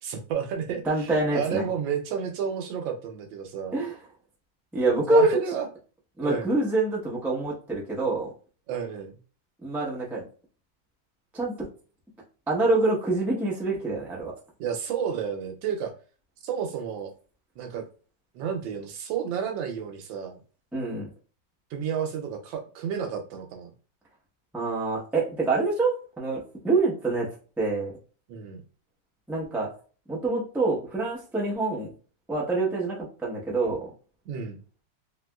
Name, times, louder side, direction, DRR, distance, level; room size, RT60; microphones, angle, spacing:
voice 1, 0.0-3.8 5.1-5.7 6.2-6.5 8.7-9.1 14.6-15.9 16.4-17.1 17.6-17.8 18.3-20.4 21.7-23.7 28.3-28.6 34.3-34.6, right 7 dB, 90° right, 5 dB, 1.4 m, -31 dB
voice 2, 0.8-1.7 3.7-4.0 4.7-5.4 6.2-8.3 9.6-10.2 11.3-11.7 12.5-14.3 20.7-21.1 24.5-27.3 27.6-27.9 29.3-29.7 30.1-31.9 32.3-33.9, right 2 dB, ahead, -4 dB, 0.4 m, -26 dB
3.3 x 3.0 x 2.3 m, 0.38 s
omnidirectional pair, 2.0 m